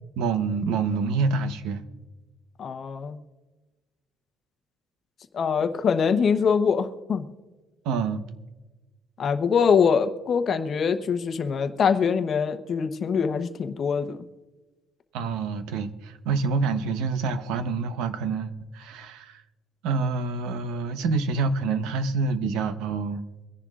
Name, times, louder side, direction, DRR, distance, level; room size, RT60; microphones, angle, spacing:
voice 1, 0.2-1.8 7.8-8.2 15.1-19.4 19.8-23.2, right 4 dB, 90° right, 9 dB, 1.0 m, -27 dB
voice 2, 2.6-3.2 5.3-7.3 9.2-14.2, left 6 dB, 35° left, 8 dB, 0.9 m, -23 dB
23.5 x 10.5 x 2.5 m, 1.2 s
cardioid pair, 170°, 0 cm